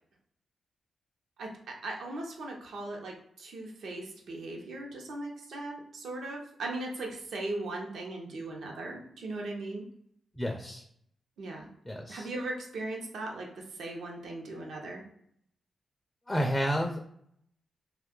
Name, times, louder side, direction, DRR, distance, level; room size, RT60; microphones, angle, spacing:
voice 1, 1.4-9.8 11.4-11.7 12.1-15.0, right 2 dB, 80° right, 0 dB, 0.7 m, -38 dB
voice 2, 10.4-10.8 11.9-12.3 16.3-17.1, equal, 10° left, 2 dB, 0.4 m, -30 dB
2.6 x 2.3 x 3.6 m, 0.70 s
cardioid pair, 85°, 0 cm